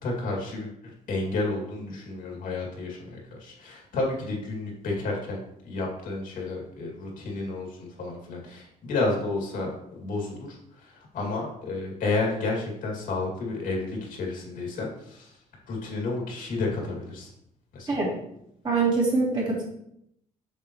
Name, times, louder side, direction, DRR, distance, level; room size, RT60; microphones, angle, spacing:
voice 1, 0.0-15.4 15.7-17.3 17.7-17.9, left 3 dB, 80° left, -1 dB, 2.3 m, -31 dB
voice 2, 18.6-19.6, right 3 dB, 35° right, -5 dB, 2.9 m, -24 dB
7.3 x 6.8 x 3.1 m, 0.76 s
cardioid pair, 150°, 14 cm